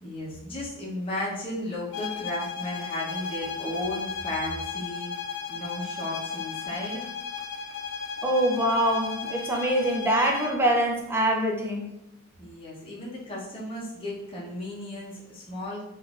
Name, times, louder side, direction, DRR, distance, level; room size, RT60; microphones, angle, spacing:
voice 1, 0.0-5.1 5.5-7.1 12.4-15.8, left 1 dB, 25° left, -5 dB, 0.7 m, -34 dB
sound 1, 1.9-10.6, left 5 dB, 55° left, 0.4 m, -35 dB
voice 2, 8.2-11.9, right 1 dB, 10° right, -1 dB, 0.4 m, -24 dB
3.6 x 2.5 x 2.4 m, 0.89 s
head